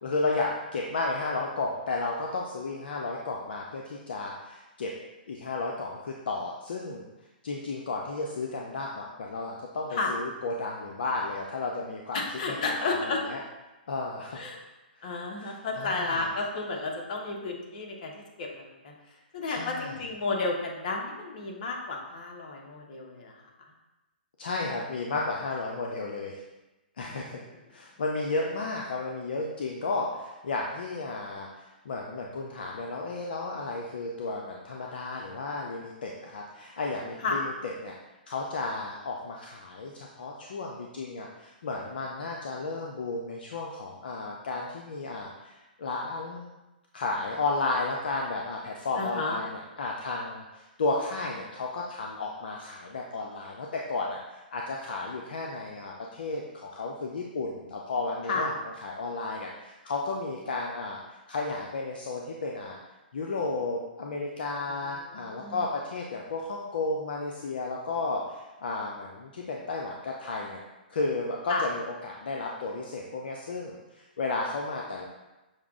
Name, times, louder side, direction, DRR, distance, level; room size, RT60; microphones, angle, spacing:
voice 1, 0.0-4.9 5.3-7.1 7.4-12.2 12.5-12.9 13.2-13.4 13.9-14.4 15.5-16.3 19.5-19.9 24.4-26.4 27.0-27.4 27.7-37.9 38.3-46.5 46.9-58.5 58.8-61.0 61.3-62.8 63.1-70.6 70.9-75.0, left 3 dB, 70° left, -1 dB, 0.5 m, -33 dB
voice 2, 12.1-13.2 14.3-14.6 15.0-18.9 19.3-23.4 27.1-27.5 37.2-37.4 49.0-49.4 58.3-58.5 64.7-65.6 71.5-71.6, left 3 dB, 50° left, 0 dB, 1.0 m, -32 dB
6.3 x 2.4 x 3.6 m, 1.1 s
hypercardioid pair, 135°, 5 cm